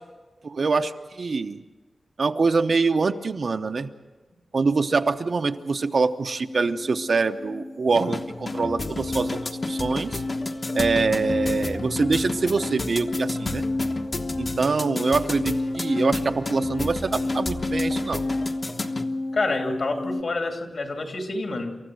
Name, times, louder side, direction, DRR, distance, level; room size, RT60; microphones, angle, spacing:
voice 1, 0.4-1.6 2.2-3.9 4.5-9.4 9.6-10.2 10.7-13.6 14.4-18.2, right 4 dB, 55° right, 7 dB, 0.8 m, -24 dB
sound 1, 5.4-5.6 5.8-20.2, left 2 dB, 80° left, 1.5 m, -31 dB
sound 2, 7.9-19.1, left 2 dB, 35° left, 1.1 m, -33 dB
voice 2, 19.3-21.8, left 2 dB, 55° left, 3 dB, 2.8 m, -27 dB
28.0 x 14.0 x 7.8 m, 1.2 s
wide cardioid pair, 140°, 0 cm